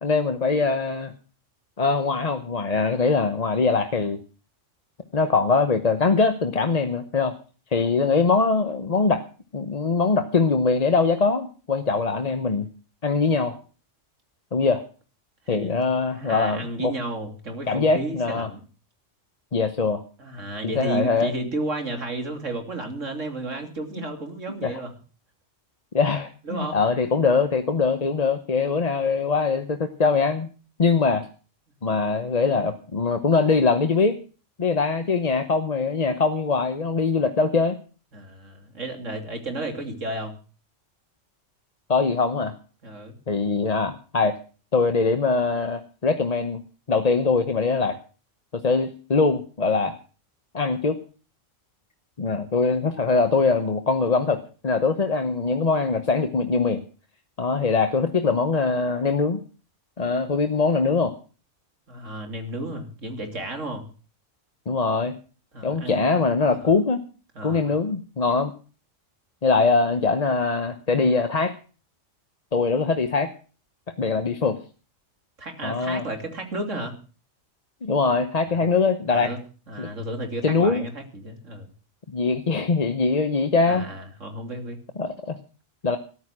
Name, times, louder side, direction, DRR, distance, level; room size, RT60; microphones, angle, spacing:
voice 1, 0.0-1.1 1.8-4.2 5.1-7.4 7.7-9.2 9.5-12.7 13.0-13.6 14.5-14.8 15.5-16.9 17.7-18.5 19.5-20.0 20.6-21.3 24.6-24.8 25.9-30.5 30.8-31.3 31.8-34.1 34.6-37.8 41.9-42.5 43.3-44.4 44.7-46.6 46.9-48.0 48.5-49.9 50.5-51.0 52.2-56.8 57.4-59.4 60.0-61.1 64.7-65.2 65.6-67.0 67.4-68.5 69.4-71.5 72.5-73.3 74.0-74.6 75.6-76.0 77.8-79.3 79.8-79.9 80.4-80.8 82.1-83.8 85.0-85.4 85.8-86.0, left 4 dB, 35° left, 8 dB, 1.0 m, -22 dB
voice 2, 15.5-15.8 16.1-18.6 20.2-24.9 26.4-26.8 38.1-40.3 42.8-43.2 61.9-63.8 65.5-66.1 66.5-66.7 67.3-67.7 75.4-76.9 78.5-78.7 79.1-79.4 79.7-81.7 83.7-84.8, right 1 dB, 75° right, 5 dB, 3.4 m, -33 dB
14.0 x 11.5 x 6.1 m, 0.38 s
omnidirectional pair, 1.3 m